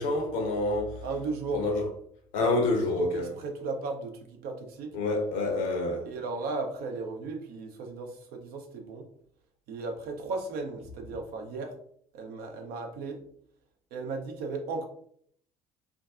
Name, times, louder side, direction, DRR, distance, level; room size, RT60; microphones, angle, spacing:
voice 1, 0.0-1.0 1.5-1.8 2.3-3.3 4.9-6.1, left 2 dB, 75° left, 0.7 m, -27 dB
voice 2, 1.0-1.6 3.1-4.9 6.0-9.1 9.7-11.7 12.1-13.2 13.9-14.9, right 3 dB, 60° right, 0.6 m, -35 dB
2.6 x 2.3 x 2.4 m
hypercardioid pair, 55°, 18 cm